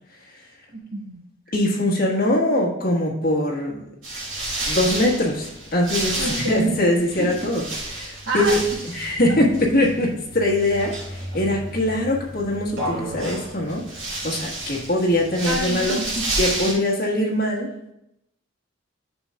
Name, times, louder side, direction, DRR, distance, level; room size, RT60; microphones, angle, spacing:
voice 1, 0.7-1.2 6.2-6.8 7.2-7.3 8.2-8.6 15.5-16.2, right 3 dB, 60° right, 1 dB, 1.2 m, -27 dB
voice 2, 1.5-3.8 4.6-7.6 7.9-8.6 8.9-13.8 14.2-16.0 16.4-17.7, left 1 dB, 45° left, -3 dB, 1.4 m, -22 dB
sound 1, 4.0-16.7, right 1 dB, 75° right, 2.5 m, -31 dB
8.7 x 6.4 x 2.3 m, 0.82 s
head